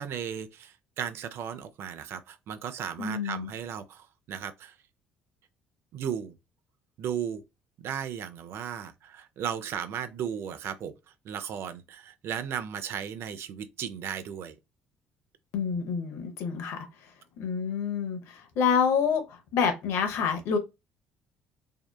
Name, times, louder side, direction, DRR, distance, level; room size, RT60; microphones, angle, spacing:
voice 1, 0.0-4.7 5.9-6.3 7.0-7.4 7.8-10.9 11.2-14.5, right 8 dB, 60° right, 0.4 m, -35 dB
voice 2, 3.0-3.5 15.5-16.9 17.4-20.6, left 6 dB, 70° left, 0.6 m, -28 dB
2.7 x 2.1 x 2.2 m
hypercardioid pair, 60°, 5 cm